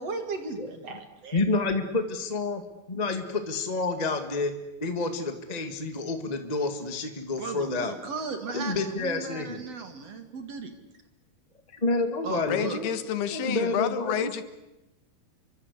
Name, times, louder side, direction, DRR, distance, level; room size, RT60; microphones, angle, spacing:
voice 1, 0.0-1.4 7.4-10.7 12.2-12.9, right 4 dB, 45° right, 7 dB, 2.9 m, -36 dB
voice 2, 1.3-2.6 2.9-4.5 4.8-7.9 8.5-9.6 11.8-12.9 13.3-14.4, left 3 dB, 25° left, 7 dB, 0.9 m, -29 dB
voice 3, 12.5-14.4, left 9 dB, 85° left, 11 dB, 3.6 m, -29 dB
29.0 x 23.5 x 8.4 m, 0.94 s
omnidirectional pair, 4.4 m